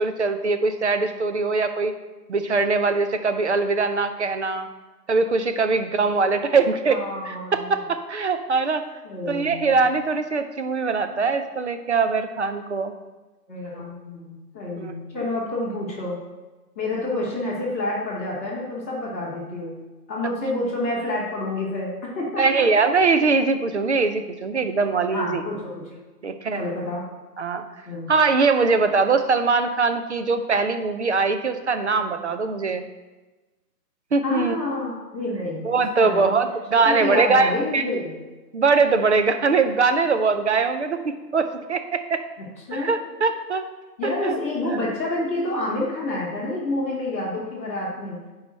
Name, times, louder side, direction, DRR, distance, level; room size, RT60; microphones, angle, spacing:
voice 1, 0.0-1.9 2.3-4.7 5.1-8.8 9.3-12.9 14.8-14.9 22.4-25.4 26.2-26.6 27.4-27.7 28.1-32.8 34.1-34.6 35.6-37.8 38.5-42.2 42.7-43.6 44.2-44.4 44.7-44.8, right 4 dB, 45° right, 8 dB, 0.5 m, -22 dB
voice 2, 6.9-7.7 9.0-9.8 13.5-16.2 16.7-19.7 20.1-22.4 25.1-25.8 26.5-27.0 27.8-28.1 34.2-35.7 35.9-36.3 36.8-38.1 42.7-42.9 44.0-48.2, left 2 dB, 10° left, -11 dB, 0.8 m, -28 dB
9.4 x 4.9 x 4.1 m, 1.2 s
hypercardioid pair, 175°, 49 cm